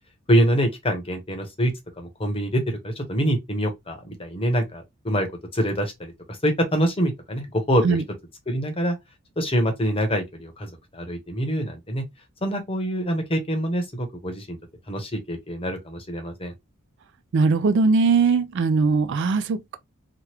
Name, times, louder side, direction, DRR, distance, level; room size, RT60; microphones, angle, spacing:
voice 1, 0.3-5.3 5.5-6.1 6.4-8.0 8.5-9.0 9.4-12.0 12.4-14.6 14.9-16.5, equal, 25° left, 0.8 m, -25 dB
voice 2, 17.3-19.8, right 4 dB, 55° right, 0.3 m, -20 dB
2.9 x 2.3 x 3.2 m
head